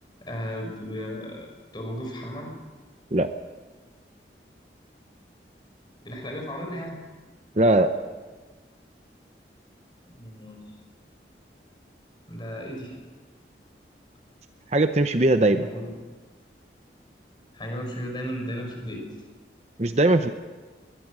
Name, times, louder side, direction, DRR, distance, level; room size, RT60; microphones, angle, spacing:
voice 1, 0.2-1.5 1.7-2.5 6.0-7.0 10.1-10.7 12.3-13.0 15.4-15.9 17.5-19.1, equal, 25° left, 2 dB, 5.3 m, -35 dB
voice 2, 7.6-7.9 14.7-15.7 19.8-20.3, right 2 dB, 40° right, 8 dB, 0.8 m, -20 dB
22.0 x 20.0 x 6.2 m, 1.4 s
head